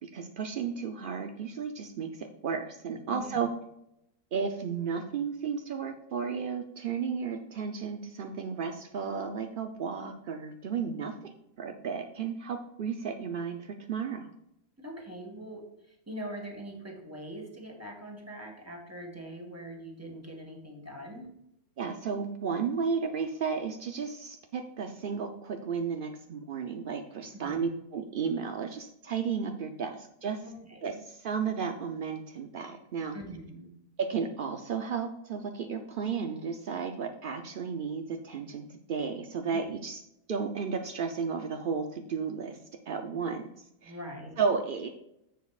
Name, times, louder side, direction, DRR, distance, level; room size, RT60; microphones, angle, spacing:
voice 1, 0.0-3.5 4.3-14.3 21.8-30.4 30.8-33.2 34.0-40.0 40.3-42.6 42.9-43.4 43.8-43.9 44.4-44.9, right 6 dB, 75° right, 5 dB, 0.5 m, -33 dB
voice 2, 3.1-3.4 14.8-21.3 27.4-27.8 30.4-31.0 33.1-33.7 39.5-39.6 43.8-44.4, right 1 dB, 10° right, 0 dB, 1.5 m, -43 dB
10.0 x 7.2 x 2.4 m, 0.80 s
omnidirectional pair, 1.7 m